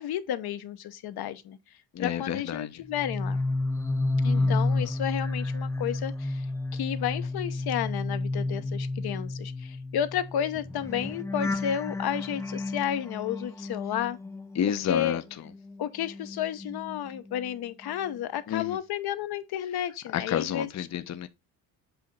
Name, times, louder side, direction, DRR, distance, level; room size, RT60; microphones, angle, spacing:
voice 1, 0.0-1.6 2.0-3.4 4.2-6.5 6.7-14.2 14.9-15.2 15.8-20.7, left 10 dB, 65° left, 1.0 m, -32 dB
voice 2, 1.9-2.8 4.3-4.5 11.4-11.6 14.5-15.2 18.5-18.8 20.1-21.3, left 9 dB, 40° left, 0.8 m, -30 dB
sound 1, 2.9-15.2 15.5-17.5 17.8-18.2, left 2 dB, 5° left, 0.5 m, -31 dB
8.1 x 2.8 x 5.3 m
cardioid pair, 85°, 40 cm